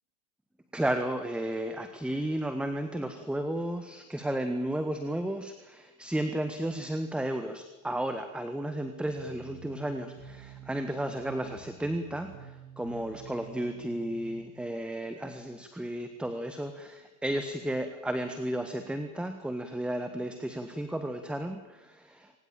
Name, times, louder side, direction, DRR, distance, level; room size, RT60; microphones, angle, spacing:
voice 1, 0.7-22.3, right 1 dB, ahead, 8 dB, 1.6 m, -33 dB
sound 1, 9.1-14.5, right 7 dB, 60° right, 4.2 m, -48 dB
26.0 x 19.0 x 9.0 m, 1.1 s
supercardioid pair, 125°, 42 cm